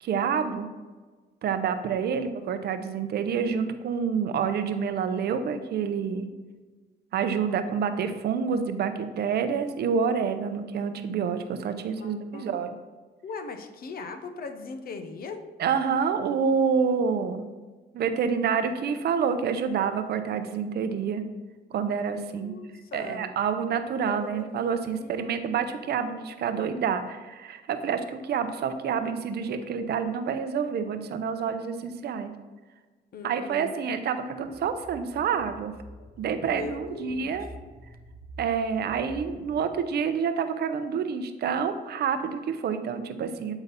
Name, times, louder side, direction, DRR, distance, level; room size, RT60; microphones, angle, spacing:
voice 1, 0.0-0.7 1.4-6.3 7.1-12.7 15.6-17.5 17.9-21.2 21.7-22.5 22.9-32.3 33.2-35.7 36.2-37.5 38.4-43.5, right 6 dB, 65° right, 8 dB, 0.6 m, -28 dB
voice 2, 12.0-12.5 13.2-15.4 22.3-23.3 24.0-24.4 24.9-25.5 33.1-33.8 36.5-37.3, left 4 dB, 55° left, 7 dB, 0.7 m, -39 dB
sound 1, 34.4-39.7, right 1 dB, 5° left, 1.2 m, -47 dB
8.1 x 4.0 x 4.0 m, 1.3 s
cardioid pair, 85°, 18 cm